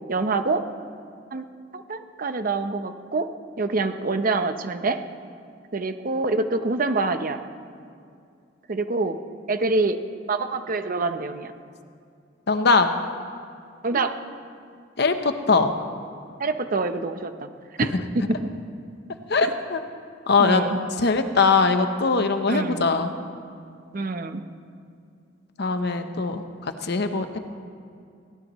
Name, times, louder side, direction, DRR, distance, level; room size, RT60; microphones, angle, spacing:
voice 1, 0.1-0.6 1.3-1.4 1.7-3.3 3.6-5.0 5.7-7.4 8.7-9.2 9.5-10.0 10.3-11.5 13.8-14.2 16.4-17.5 17.8-18.2 19.4-19.5 20.4-20.8 22.5-22.9 23.9-24.4, right 3 dB, 50° right, 9 dB, 0.8 m, -26 dB
voice 2, 12.5-12.9 15.0-15.7 17.9-18.0 19.3-19.8 20.3-20.6 21.0-23.1 25.6-27.4, left 4 dB, 60° left, 7 dB, 0.9 m, -21 dB
21.5 x 16.5 x 3.1 m, 2.4 s
head